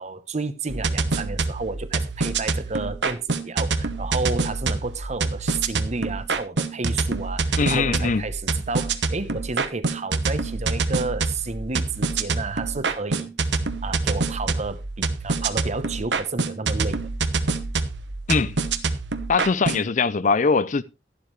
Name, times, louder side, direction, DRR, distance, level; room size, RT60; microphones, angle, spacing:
voice 1, 0.0-13.3 13.8-17.1, right 3 dB, 40° right, 1.0 m, -31 dB
sound 1, 0.7-19.8, right 3 dB, 80° right, 1.0 m, -26 dB
voice 2, 7.6-8.2 18.3-18.6 19.3-20.8, left 4 dB, 45° left, 0.5 m, -21 dB
11.5 x 11.5 x 3.2 m
head